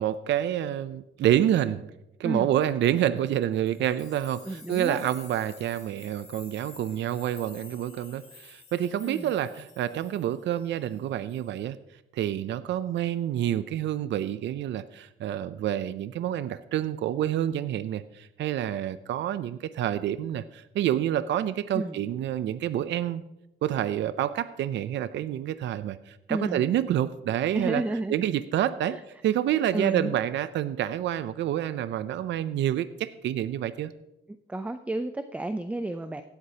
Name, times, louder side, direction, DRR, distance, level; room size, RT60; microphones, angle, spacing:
voice 1, 0.0-1.9 2.2-11.8 12.1-23.2 23.6-27.8 28.1-29.0 29.2-33.9, right 11 dB, 65° right, 14 dB, 0.5 m, -28 dB
sound 1, 3.6-11.0 11.3-11.6, left 3 dB, 30° left, 2.8 m, -51 dB
voice 2, 4.5-5.0 9.0-9.3 21.7-22.0 26.3-26.7 27.5-28.2 28.9-29.0 29.7-30.1 34.5-36.2, right 2 dB, 5° right, 10 dB, 0.5 m, -31 dB
17.0 x 8.0 x 2.9 m, 0.89 s
cardioid pair, 90°, 20 cm